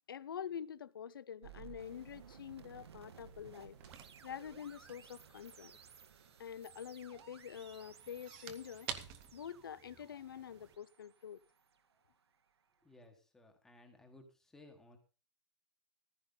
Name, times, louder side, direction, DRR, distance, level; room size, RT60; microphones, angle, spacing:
voice 1, 0.1-3.8 4.2-5.7 6.4-8.9 9.3-11.4, left 8 dB, 50° left, 0.7 m, -46 dB
sound 1, 1.4-12.5, right 7 dB, 60° right, 1.4 m, -58 dB
sound 2, 1.8-10.8, right 9 dB, 15° right, 0.8 m, -53 dB
voice 2, 12.8-15.0, left 2 dB, 5° left, 1.4 m, -60 dB
14.5 x 14.5 x 3.9 m
hypercardioid pair, 170°, 15 cm